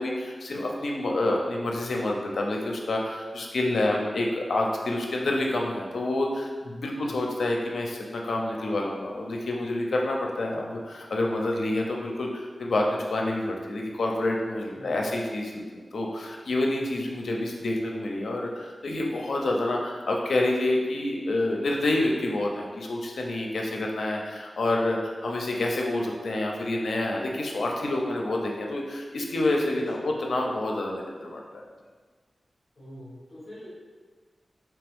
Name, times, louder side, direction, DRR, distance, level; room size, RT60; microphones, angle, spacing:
voice 1, 0.0-31.6, left 2 dB, 80° left, 0 dB, 0.5 m, -28 dB
voice 2, 14.7-15.1 29.7-30.1 32.7-33.7, equal, 30° left, -9 dB, 1.2 m, -45 dB
3.4 x 3.1 x 3.5 m, 1.5 s
wide cardioid pair, 130°, 0 cm